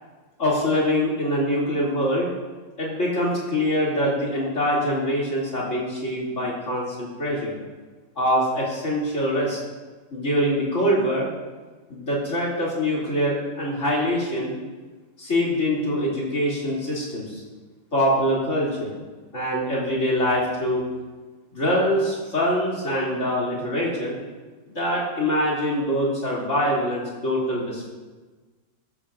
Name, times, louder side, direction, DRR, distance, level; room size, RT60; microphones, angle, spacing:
voice 1, 0.4-2.3 2.8-7.5 8.2-9.6 10.1-11.3 11.9-14.6 15.2-17.4 17.9-18.9 19.3-20.8 21.5-24.1 24.7-27.9, equal, 40° left, -5 dB, 3.1 m, -24 dB
13.5 x 12.5 x 2.5 m, 1.3 s
omnidirectional pair, 2.0 m